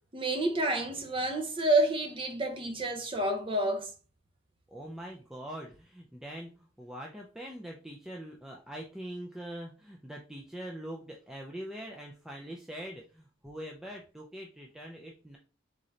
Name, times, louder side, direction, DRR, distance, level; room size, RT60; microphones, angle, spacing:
voice 1, 0.1-3.9, right 2 dB, 25° right, 0.7 m, -29 dB
voice 2, 4.7-15.4, equal, ahead, 0.4 m, -43 dB
4.0 x 3.8 x 3.1 m
head